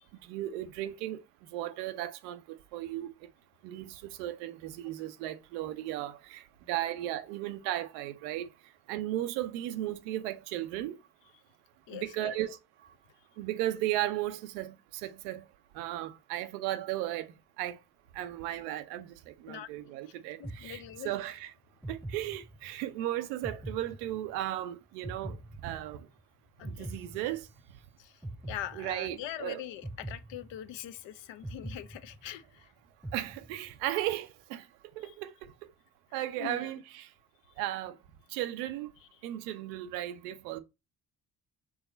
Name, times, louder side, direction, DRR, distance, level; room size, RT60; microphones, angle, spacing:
voice 1, 0.2-1.2 1.5-3.1 3.6-6.4 6.7-8.5 8.9-11.0 11.9-12.6 13.4-14.7 15.0-15.4 15.7-17.8 18.2-21.5 21.9-25.4 25.6-26.1 26.7-27.4 28.8-29.6 33.1-34.6 35.0-35.3 36.1-37.1 37.6-37.9 38.3-38.9 39.2-40.6, right 14 dB, 90° right, 0.6 m, -35 dB
voice 2, 11.9-12.4 19.5-19.7 20.4-21.1 26.6-27.0 28.0-28.2 28.5-32.7 35.0-35.1 36.4-36.7, left 11 dB, 65° left, 0.6 m, -42 dB
sound 1, 20.4-21.3 21.8-22.9 23.4-24.6 25.0-26.2 26.6-27.8 28.2-29.3 29.8-31.0 31.4-32.6 33.0-33.9, right 1 dB, 5° right, 0.7 m, -44 dB
4.8 x 2.9 x 3.9 m
hypercardioid pair, 40°, 48 cm